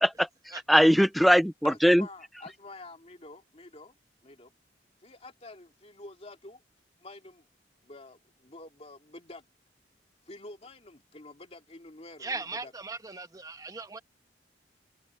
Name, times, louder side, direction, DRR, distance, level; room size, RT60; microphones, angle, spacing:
voice 1, 0.0-2.1, equal, ahead, 0.4 m, -21 dB
voice 2, 1.6-3.9 4.2-4.5 5.0-6.6 7.0-7.5 7.8-9.5 10.3-12.7, left 2 dB, 35° left, 2.4 m, -48 dB
voice 3, 12.2-14.0, right 3 dB, 20° right, 1.2 m, -38 dB
head